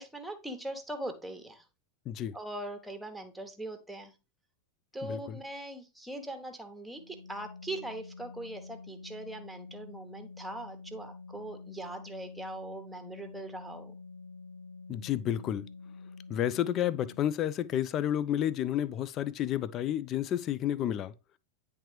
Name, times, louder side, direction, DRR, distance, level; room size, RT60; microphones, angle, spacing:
voice 1, 0.0-1.6 2.3-4.1 4.9-13.9, right 1 dB, ahead, 1.0 m, -41 dB
voice 2, 5.0-5.4 14.9-15.6 16.3-21.1, left 11 dB, 35° left, 0.4 m, -31 dB
Organ, 6.9-17.5, left 4 dB, 80° right, 0.5 m, -48 dB
9.9 x 3.3 x 3.2 m
figure-of-eight pair, 90°, 0 cm